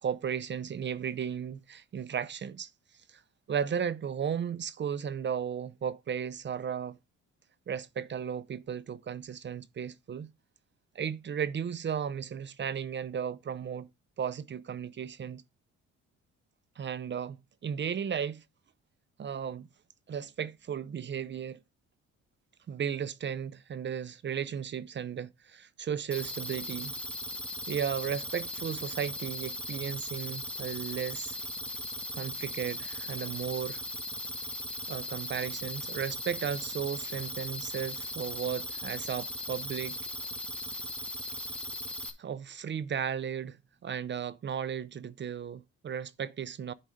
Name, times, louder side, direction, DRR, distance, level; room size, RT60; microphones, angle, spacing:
voice 1, 0.0-2.7 3.1-3.2 3.5-7.0 7.7-10.3 11.0-13.9 14.2-15.4 16.8-17.4 17.6-18.4 19.2-19.7 20.1-21.6 22.7-26.9 27.7-31.4 32.1-33.8 34.9-40.0 42.2-43.6 43.8-46.7, right 8 dB, 40° right, 0.5 m, -35 dB
sound 1, 26.1-42.1, left 1 dB, 5° left, 1.6 m, -38 dB
10.0 x 4.0 x 4.9 m
cardioid pair, 90°, 30 cm